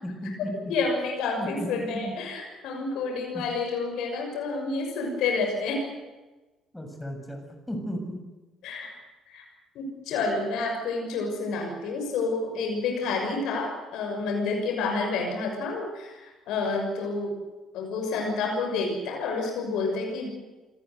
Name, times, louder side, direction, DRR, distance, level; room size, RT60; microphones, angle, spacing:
voice 1, 0.0-0.5 1.4-2.1 3.3-3.4 6.7-7.4 7.7-8.2, equal, 10° left, 3 dB, 7.4 m, -34 dB
voice 2, 0.7-5.9 8.6-8.9 9.3-9.4 9.7-17.3 17.7-20.3, left 3 dB, 60° left, 2 dB, 6.3 m, -29 dB
26.5 x 19.5 x 8.0 m, 1.2 s
figure-of-eight pair, 45°, 0 cm